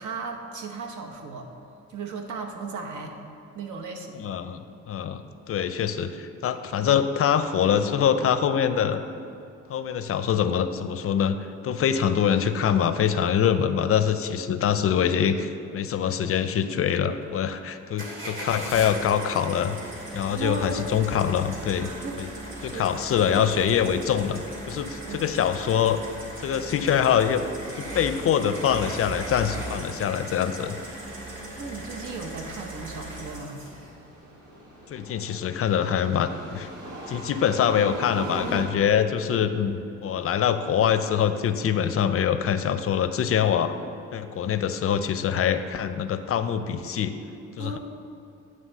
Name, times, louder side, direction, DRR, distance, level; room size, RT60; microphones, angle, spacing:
voice 1, 0.0-1.5 1.9-3.2 3.5-4.3 20.3-21.0 21.8-23.1 25.1-25.3 31.5-33.6 47.6-47.8, right 4 dB, 75° right, 3 dB, 1.0 m, -36 dB
voice 2, 4.1-9.0 9.7-11.4 11.6-19.8 20.1-21.9 22.2-22.3 22.6-24.4 24.7-26.0 26.4-27.5 27.8-30.8 34.9-36.7 37.1-43.7 44.1-47.1 47.6-47.8, left 8 dB, 50° left, 10 dB, 0.5 m, -24 dB
sound 1, 18.0-33.9, right 1 dB, 40° right, 1.8 m, -38 dB
sound 2, 31.0-38.6, right 1 dB, 90° right, 1.4 m, -40 dB
9.2 x 3.2 x 6.5 m, 2.7 s
cardioid pair, 90°, 30 cm